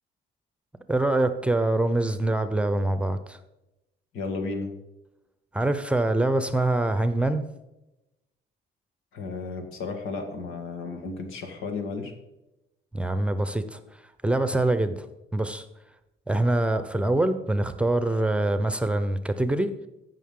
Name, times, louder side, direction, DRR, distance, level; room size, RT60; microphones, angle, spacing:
voice 1, 0.9-3.4 5.5-7.5 12.9-13.8 14.2-15.1 15.3-15.7 16.3-19.7, right 2 dB, 5° right, 10 dB, 0.8 m, -24 dB
voice 2, 4.1-4.7 9.1-12.1, left 4 dB, 90° left, 4 dB, 1.7 m, -33 dB
14.5 x 5.7 x 3.8 m, 0.94 s
cardioid pair, 90°, 20 cm